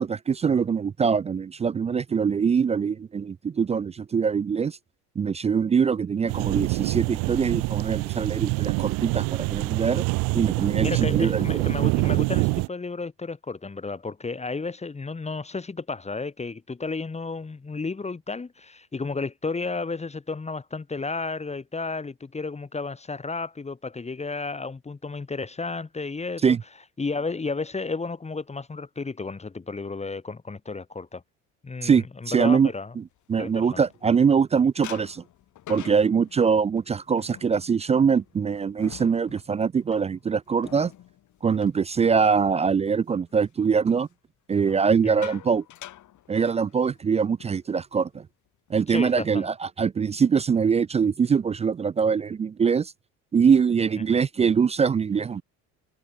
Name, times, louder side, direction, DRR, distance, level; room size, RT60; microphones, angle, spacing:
voice 1, 0.0-4.8 5.2-10.0 10.3-11.6 26.4-26.6 31.8-32.7 33.0-33.1 33.3-35.2 35.7-40.9 41.4-44.1 44.5-45.6 46.3-48.3 48.7-52.9 53.3-55.4, right 6 dB, 20° right, 0.3 m, -23 dB
sound 1, 6.3-12.7, right 27 dB, 75° right, 0.5 m, -25 dB
voice 2, 10.8-26.6 27.0-31.2 31.6-32.9 33.4-33.8 45.0-45.3 48.9-49.5, left 4 dB, 20° left, 2.4 m, -32 dB
sound 2, 33.0-34.4 34.8-42.7 43.0-43.3 44.5-47.1 47.4-47.6 47.9-48.2 48.7-49.4, left 13 dB, 60° left, 7.8 m, -47 dB
supercardioid pair, 95°, 33 cm